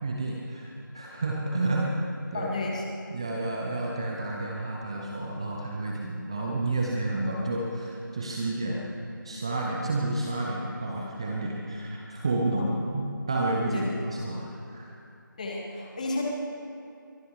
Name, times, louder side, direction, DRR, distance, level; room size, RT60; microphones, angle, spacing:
voice 1, 0.0-2.0 2.3-2.5 3.1-8.8 9.2-13.0 13.3-15.0, right 2 dB, 15° right, -2 dB, 0.7 m, -30 dB
voice 2, 2.3-2.8 12.5-12.7 13.7-13.8 15.4-16.2, left 2 dB, 20° left, -1 dB, 1.5 m, -32 dB
23.0 x 19.0 x 3.2 m, 2.6 s
figure-of-eight pair, 165°, 11 cm